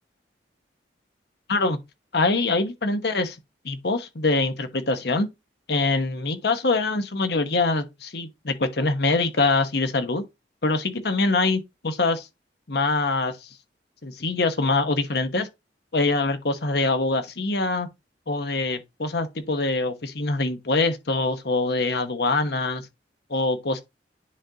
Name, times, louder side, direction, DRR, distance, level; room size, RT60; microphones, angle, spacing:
voice 1, 2.1-3.4 3.6-5.3 5.7-10.2 10.6-12.3 12.7-13.5 14.0-15.5 15.9-17.9 18.3-22.9 23.3-23.8, left 3 dB, 65° left, 1.1 m, -24 dB
9.8 x 3.8 x 2.8 m
head